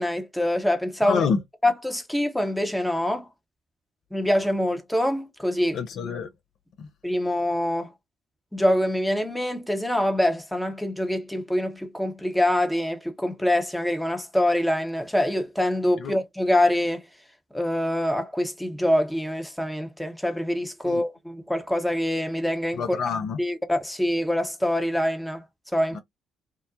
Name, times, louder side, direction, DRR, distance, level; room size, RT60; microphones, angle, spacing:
voice 1, 0.0-1.3 1.6-3.3 4.1-5.8 7.0-7.9 8.5-17.0 17.5-22.8 23.4-25.4 25.7-26.0, left 1 dB, 5° left, 0.8 m, -25 dB
voice 2, 1.0-1.4 5.7-6.3 6.8-6.9 16.0-16.1 20.8-21.0 22.8-23.4 25.9-26.0, left 6 dB, 55° left, 0.4 m, -27 dB
2.8 x 2.1 x 2.4 m
figure-of-eight pair, 45°, 0 cm